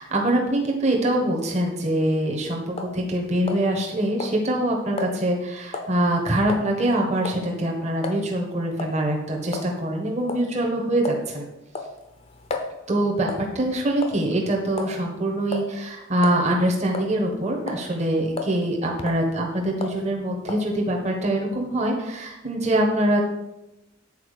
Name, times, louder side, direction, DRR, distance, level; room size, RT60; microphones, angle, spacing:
voice 1, 0.0-11.5 12.9-23.2, right 1 dB, 35° right, 1 dB, 1.2 m, -24 dB
sound 1, 2.8-3.0 3.5-3.9 4.2-4.4 5.0-5.1 5.7-5.9 6.5-6.7 7.2-7.5 8.0-8.2 8.8-9.0 9.5-9.7 10.3-10.5 11.0-11.3 11.7-12.7 13.3-13.5 14.0-14.4 14.8-15.0 15.5-15.7 16.2-16.4 16.9-17.3 17.7-17.9 18.4-18.6 19.0-19.2 19.8-20.0 20.5-20.7, left 3 dB, 30° left, 0.8 m, -32 dB
8.4 x 4.5 x 6.5 m, 0.95 s
head